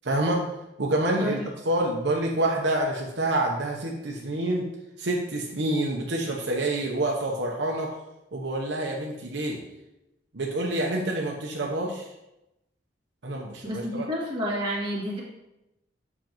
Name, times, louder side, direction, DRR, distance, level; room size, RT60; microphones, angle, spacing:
voice 1, 0.0-0.5 0.8-4.7 5.0-7.9 8.3-9.6 10.3-12.1 13.2-14.1, right 1 dB, 70° right, -1 dB, 0.9 m, -27 dB
voice 2, 13.6-15.2, equal, 25° right, -5 dB, 1.7 m, -30 dB
7.6 x 6.0 x 3.0 m, 0.91 s
head